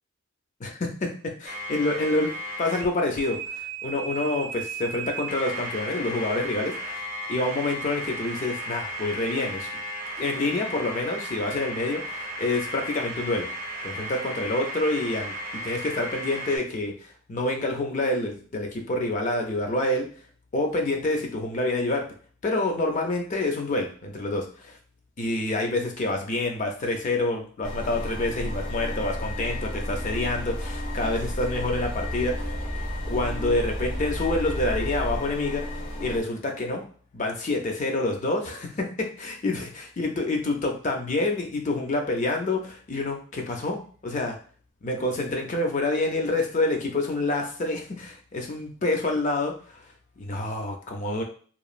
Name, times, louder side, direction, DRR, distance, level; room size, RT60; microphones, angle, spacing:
voice 1, 0.6-1.1 1.4-2.3 2.6-7.0 7.3-9.7 10.2-13.5 13.8-20.1 20.5-22.1 22.4-24.8 25.2-32.5 33.1-36.9 37.1-44.4 44.8-49.8 50.2-51.2, left 2 dB, 40° left, 2 dB, 0.5 m, -27 dB
sound 1, 1.5-2.9 3.1-16.6, right 1 dB, 45° right, 0.7 m, -35 dB
sound 2, 27.6-36.2, equal, 85° left, 1.1 m, -32 dB
3.0 x 2.3 x 2.4 m, 0.43 s
head